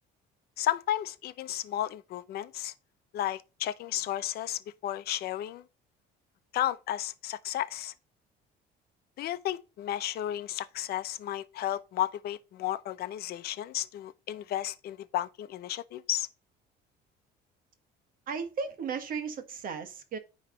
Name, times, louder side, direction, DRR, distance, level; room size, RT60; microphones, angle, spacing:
voice 1, 0.6-2.7 3.1-5.6 6.5-7.9 9.2-16.3, left 12 dB, 60° left, 0.8 m, -33 dB
voice 2, 18.3-20.2, right 5 dB, 50° right, 1.5 m, -35 dB
9.8 x 3.3 x 5.1 m
cardioid pair, 135°, 18 cm